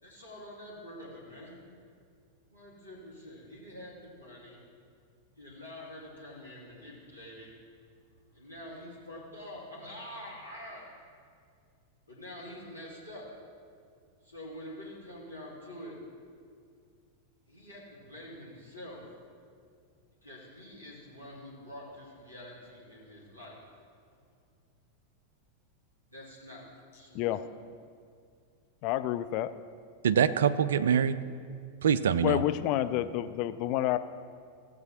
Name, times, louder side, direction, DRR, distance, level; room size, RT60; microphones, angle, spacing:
voice 1, 0.0-1.6 2.5-4.6 5.4-11.0 12.1-13.3 14.2-16.0 17.5-19.1 20.2-24.2 26.1-26.6 26.9-27.4, left 1 dB, 90° left, -8 dB, 1.8 m, -46 dB
voice 2, 28.8-29.5 32.2-34.0, left 14 dB, 40° left, 11 dB, 0.3 m, -29 dB
voice 3, 30.0-31.2 31.8-32.4, right 8 dB, 65° right, 14 dB, 0.3 m, -24 dB
15.5 x 7.6 x 3.0 m, 2.2 s
figure-of-eight pair, 90°, 0 cm